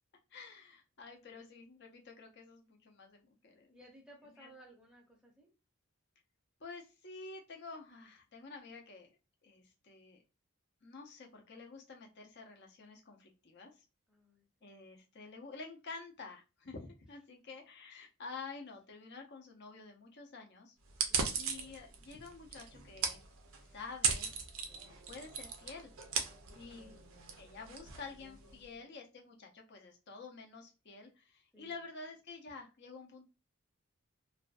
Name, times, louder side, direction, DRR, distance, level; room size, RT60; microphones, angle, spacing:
voice 1, 0.3-3.8 4.3-4.5 6.6-9.1 9.4-10.2 10.8-13.8 14.6-20.7 21.3-23.2 23.7-24.3 24.7-25.9 26.5-26.9 27.4-33.2, left 4 dB, 50° left, 2 dB, 0.6 m, -50 dB
voice 2, 3.7-5.5 14.1-14.7 26.5-27.3 27.6-29.0 31.5-31.8, equal, 5° right, -1 dB, 0.6 m, -61 dB
sound 1, 20.9-28.6, right 6 dB, 70° right, 0.5 m, -38 dB
2.5 x 2.2 x 2.4 m, 0.29 s
head